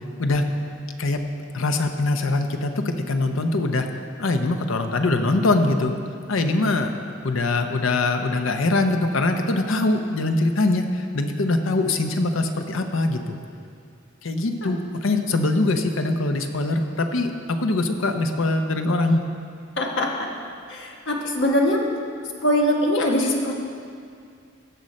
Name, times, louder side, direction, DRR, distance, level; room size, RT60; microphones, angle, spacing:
voice 1, 1.5-3.9 4.2-6.0 6.3-6.9 7.2-13.4 14.2-19.2, left 2 dB, 85° left, 5 dB, 0.7 m, -23 dB
voice 2, 19.8-20.3 20.7-21.8 22.4-23.5, left 1 dB, 65° left, 0 dB, 1.2 m, -22 dB
16.0 x 6.4 x 4.2 m, 2.3 s
head